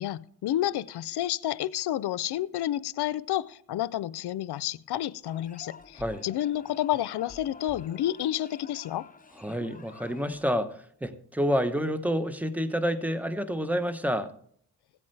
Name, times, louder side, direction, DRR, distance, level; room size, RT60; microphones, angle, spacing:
voice 1, 0.0-9.1, left 12 dB, 90° left, 0.5 m, -30 dB
sound 1, 5.2-10.6, left 4 dB, 20° left, 0.8 m, -49 dB
voice 2, 9.3-14.3, equal, 5° right, 0.9 m, -29 dB
16.0 x 8.5 x 3.3 m
cardioid pair, 60°, 38 cm